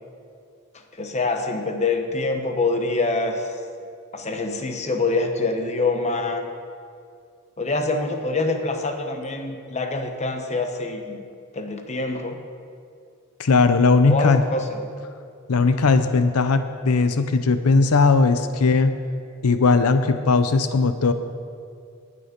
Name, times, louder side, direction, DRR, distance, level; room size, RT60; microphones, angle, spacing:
voice 1, 0.9-3.5 4.1-6.5 7.6-11.2 11.5-12.4 14.1-14.8, left 3 dB, 30° left, 5 dB, 1.0 m, -25 dB
voice 2, 13.4-14.4 15.5-19.0 19.4-21.1, left 4 dB, 90° left, 10 dB, 0.6 m, -18 dB
18.5 x 6.9 x 5.2 m, 2.4 s
head